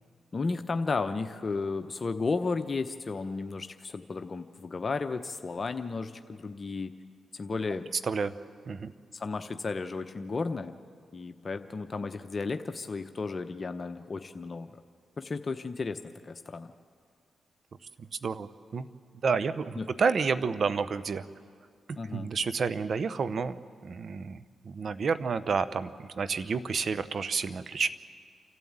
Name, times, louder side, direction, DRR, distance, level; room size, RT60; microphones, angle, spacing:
voice 1, 0.3-6.9 7.3-7.9 9.1-10.8 11.1-14.7 15.2-16.7 19.8-19.9 22.0-22.3, left 4 dB, 45° left, 8 dB, 0.9 m, -33 dB
voice 2, 8.0-8.3 8.7-8.9 18.0-18.9 19.2-21.2 21.9-23.6 23.8-24.4 24.6-27.9, right 5 dB, 60° right, 13 dB, 0.8 m, -30 dB
28.5 x 12.5 x 8.8 m, 2.1 s
supercardioid pair, 45°, 0 cm